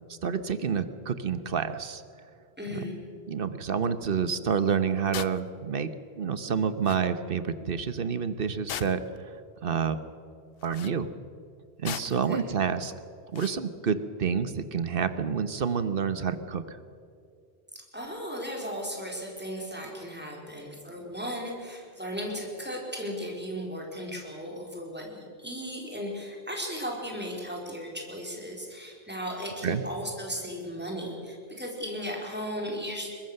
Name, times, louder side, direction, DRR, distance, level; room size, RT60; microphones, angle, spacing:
voice 1, 0.2-2.0 2.7-2.8 3.3-5.9 6.2-9.0 9.6-10.0 10.6-11.1 11.8-12.9 13.3-16.6 29.6-29.8, right 6 dB, 60° right, 12 dB, 1.2 m, -28 dB
voice 2, 2.6-3.0 12.3-12.4 17.7-33.1, equal, 10° right, -1 dB, 4.1 m, -36 dB
sound 1, 5.1-5.4 6.5-6.6 6.8-7.0 8.7-9.2 10.6-11.0 11.8-12.3 13.3-13.6, left 10 dB, 70° left, 0.9 m, -37 dB
22.5 x 20.5 x 6.6 m, 2.4 s
omnidirectional pair, 1.1 m